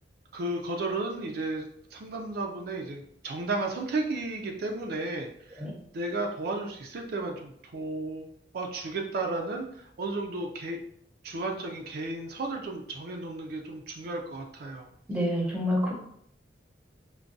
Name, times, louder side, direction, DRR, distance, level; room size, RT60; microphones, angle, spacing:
voice 1, 0.3-5.7 5.9-8.3 8.5-10.8 11.2-14.8, right 2 dB, 60° right, 2 dB, 0.4 m, -33 dB
voice 2, 15.1-15.9, equal, 5° right, -2 dB, 0.7 m, -27 dB
4.5 x 2.2 x 2.6 m, 0.68 s
head